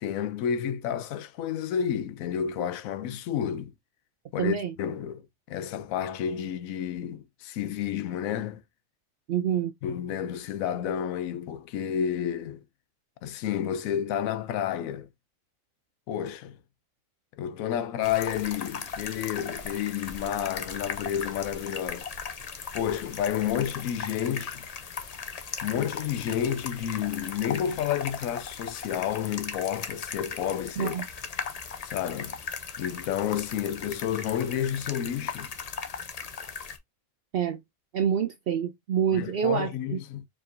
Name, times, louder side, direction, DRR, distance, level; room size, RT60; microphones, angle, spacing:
voice 1, 0.0-3.7 4.3-8.6 9.8-12.6 13.2-15.1 16.1-16.6 17.4-22.1 22.7-24.6 25.6-30.9 31.8-32.4 32.8-35.5 39.1-40.3, left 9 dB, 90° left, 1.0 m, -30 dB
voice 2, 4.4-4.7 9.3-9.7 30.8-31.0 37.3-37.6 37.9-40.0, right 8 dB, 65° right, 0.6 m, -27 dB
sound 1, 18.0-36.8, left 5 dB, 45° left, 0.5 m, -38 dB
4.6 x 3.6 x 2.5 m
omnidirectional pair, 1.4 m